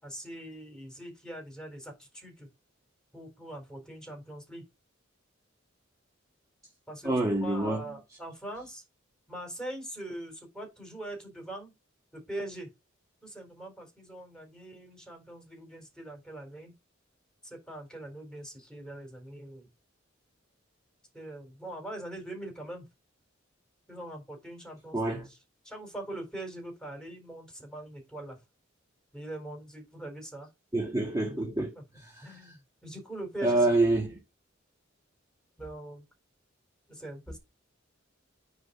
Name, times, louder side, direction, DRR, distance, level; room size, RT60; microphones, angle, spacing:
voice 1, 0.0-2.5 3.1-4.6 6.9-8.8 9.3-11.7 12.1-12.7 13.2-16.7 17.4-19.7 21.1-22.9 23.9-25.4 25.6-28.4 29.1-30.5 31.3-31.5 31.7-31.8 32.2-33.7 35.6-36.0 36.9-37.4, right 1 dB, 5° left, 4.1 m, -42 dB
voice 2, 7.0-7.8 24.9-25.3 30.7-31.7 33.4-34.1, right 2 dB, 15° right, 1.9 m, -26 dB
9.4 x 4.2 x 5.8 m
head